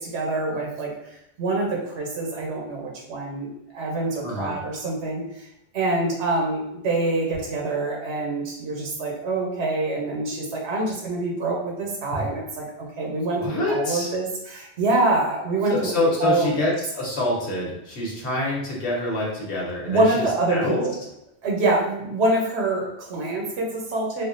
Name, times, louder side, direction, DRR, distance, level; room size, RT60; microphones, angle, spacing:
voice 1, 0.0-5.5 5.7-15.9 16.2-16.6 19.9-20.9 21.4-24.3, right 2 dB, 85° right, -1 dB, 1.0 m, -25 dB
voice 2, 4.2-4.5 12.1-12.2 13.4-14.1 15.7-20.9, left 1 dB, 85° left, -3 dB, 1.2 m, -26 dB
3.5 x 2.1 x 2.4 m, 0.84 s
omnidirectional pair, 1.1 m